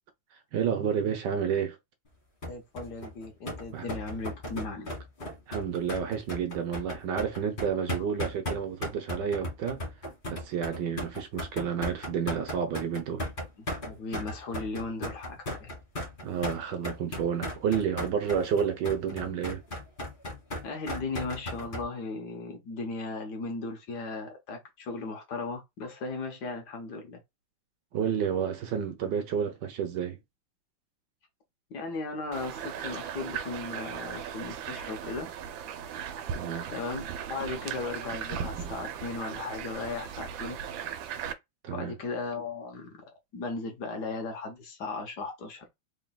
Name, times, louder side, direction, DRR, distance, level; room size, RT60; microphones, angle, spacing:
voice 1, 0.5-1.8 3.7-3.9 5.5-9.8 10.3-13.2 16.2-19.6 27.9-30.2 36.3-36.7 41.6-41.9, right 7 dB, 70° right, 1.4 m, -30 dB
sound 1, 2.4-21.8, left 1 dB, 30° left, 1.7 m, -36 dB
voice 2, 2.5-4.9 5.2-5.3 13.6-15.7 20.6-27.2 31.7-35.3 36.7-37.0 37.3-40.6 41.7-42.9 43.3-45.7, left 3 dB, 60° left, 1.5 m, -36 dB
sound 2, 32.3-41.3, right 8 dB, 85° right, 1.4 m, -37 dB
3.8 x 3.8 x 2.3 m
omnidirectional pair, 2.1 m